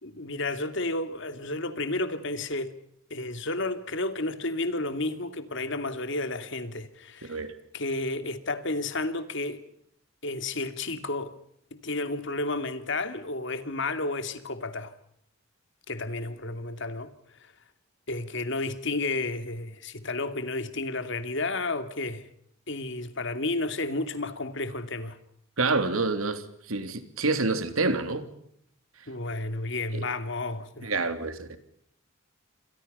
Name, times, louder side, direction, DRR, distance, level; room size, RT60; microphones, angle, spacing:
voice 1, 0.0-2.7 3.1-7.4 7.7-9.6 10.2-11.3 11.7-14.9 15.9-17.5 18.1-22.3 22.7-25.2 29.1-30.9, left 2 dB, 60° left, 2.6 m, -32 dB
voice 2, 25.6-28.3 29.9-30.1 30.8-31.6, right 3 dB, 85° right, 3.2 m, -28 dB
29.0 x 26.5 x 5.5 m
head